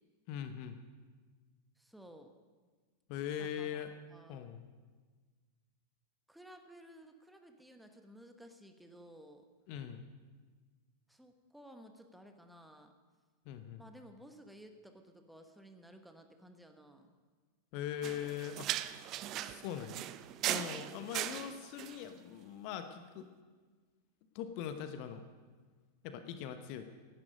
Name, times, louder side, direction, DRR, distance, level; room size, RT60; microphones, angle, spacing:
voice 1, 0.3-0.8 3.1-3.9 4.3-4.7 9.7-10.1 13.5-13.8 17.7-18.7 19.3-20.0 20.4-23.3 24.3-25.2 26.0-26.8, left 9 dB, 45° left, 9 dB, 1.0 m, -41 dB
voice 2, 1.8-2.3 3.3-3.8 4.1-4.5 6.3-9.5 11.1-12.9 13.8-17.1, equal, ahead, 5 dB, 1.3 m, -56 dB
sound 1, 18.0-22.0, right 13 dB, 35° right, 0.5 m, -39 dB
17.0 x 11.0 x 5.2 m, 1.4 s
figure-of-eight pair, 90°, 0 cm